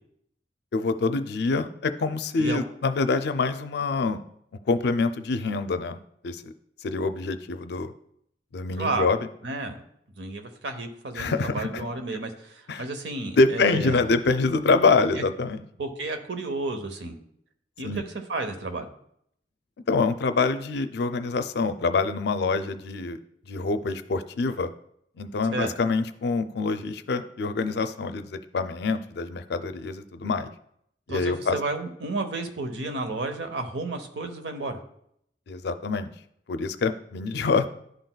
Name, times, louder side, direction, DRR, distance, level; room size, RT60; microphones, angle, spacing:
voice 1, 0.7-4.2 4.7-6.0 6.2-6.5 6.8-7.9 8.5-9.3 11.2-11.8 12.7-12.8 13.4-15.6 17.8-18.0 19.9-23.2 23.5-24.7 25.2-30.5 31.1-31.6 35.5-36.1 36.5-37.7, left 4 dB, 65° left, 10 dB, 0.4 m, -25 dB
voice 2, 8.7-9.2 9.4-9.8 10.2-14.1 15.8-17.2 17.8-17.9 18.3-18.9 25.5-25.7 31.1-34.8, right 3 dB, 85° right, 7 dB, 0.8 m, -32 dB
11.0 x 3.9 x 2.2 m, 0.71 s
head